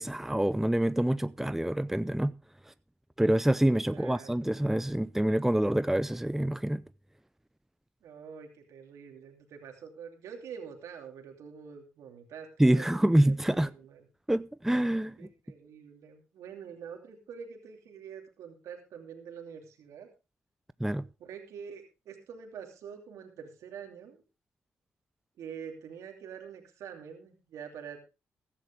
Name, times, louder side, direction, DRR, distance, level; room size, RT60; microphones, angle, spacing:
voice 1, 0.0-2.3 3.2-6.8 12.6-13.7 14.3-15.3 20.8-21.1, right 1 dB, 5° right, 0.6 m, -26 dB
voice 2, 3.9-4.3 8.0-12.9 13.2-14.0 15.2-20.1 21.2-24.2 25.4-28.0, right 7 dB, 80° right, 2.8 m, -46 dB
15.5 x 12.0 x 3.4 m
supercardioid pair, 50°, 5 cm